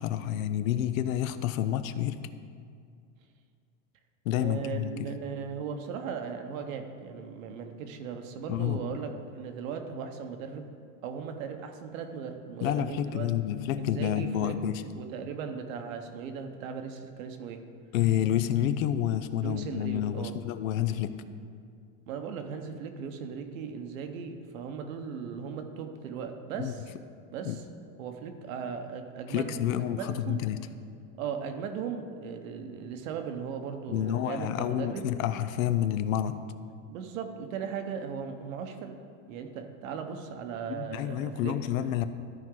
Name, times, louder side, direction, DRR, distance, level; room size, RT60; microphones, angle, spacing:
voice 1, 0.0-2.2 4.3-5.1 8.5-8.9 12.6-14.8 17.9-21.2 26.6-26.7 27.4-27.6 29.3-30.7 33.9-36.4 40.7-42.1, left 11 dB, 80° left, 11 dB, 0.6 m, -29 dB
voice 2, 4.4-10.7 11.0-13.3 13.8-14.6 15.0-17.6 19.4-20.3 22.1-26.9 27.3-27.6 28.0-29.6 29.9-30.4 31.2-35.1 36.9-39.0 39.3-41.6, right 6 dB, 75° right, 6 dB, 1.1 m, -37 dB
13.5 x 4.6 x 3.8 m, 2.3 s
supercardioid pair, 135°, 40 cm